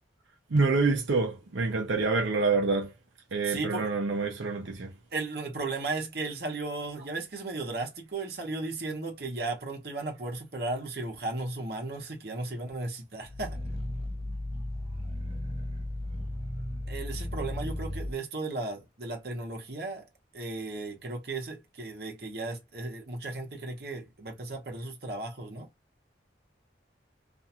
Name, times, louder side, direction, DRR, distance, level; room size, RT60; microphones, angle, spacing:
voice 1, 0.5-2.9 3.3-4.9, right 3 dB, 85° right, 0.6 m, -27 dB
voice 2, 3.5-3.9 5.1-13.6 16.9-20.0 20.3-25.7, right 3 dB, 55° right, 0.9 m, -35 dB
Growling, 13.2-18.2, left 1 dB, 30° right, 0.5 m, -35 dB
2.5 x 2.4 x 2.7 m
head